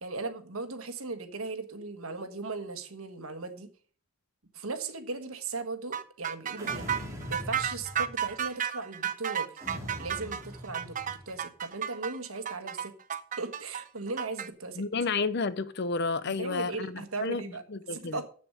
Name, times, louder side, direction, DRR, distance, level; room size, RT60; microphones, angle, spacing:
voice 1, 0.0-3.7 4.5-6.9 7.3-9.6 10.0-13.0 13.4-14.8 16.2-17.6 17.9-18.3, right 3 dB, 90° right, 1.4 m, -37 dB
sound 1, 5.9-14.5, right 9 dB, 40° right, 0.6 m, -33 dB
sound 2, 6.6-8.5 9.6-11.4, equal, 15° right, 2.2 m, -42 dB
voice 2, 14.8-16.9 17.2-17.4 17.7-18.2, left 4 dB, 50° left, 0.6 m, -30 dB
7.8 x 7.1 x 6.7 m
head